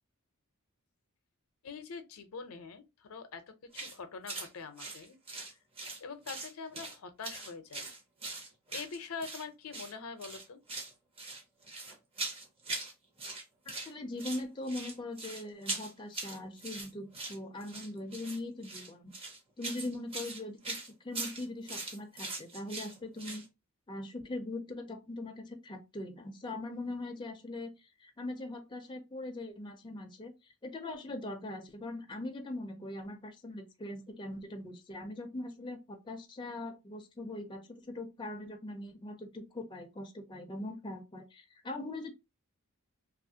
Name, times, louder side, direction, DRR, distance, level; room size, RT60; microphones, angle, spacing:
voice 1, 1.6-5.2 6.0-7.9 8.7-10.6, left 5 dB, 70° left, 0.5 m, -44 dB
sound 1, 3.7-4.0 4.3-4.5 4.8-6.0 6.3-7.0 7.2-9.4 9.7-9.9 10.2-10.9 11.2-12.9 13.2-13.9 14.2-23.5, right 3 dB, 25° right, 0.7 m, -41 dB
voice 2, 13.7-19.1 19.6-23.4 23.9-27.7 28.0-42.1, left 2 dB, 20° left, 0.4 m, -41 dB
2.8 x 2.4 x 2.7 m
head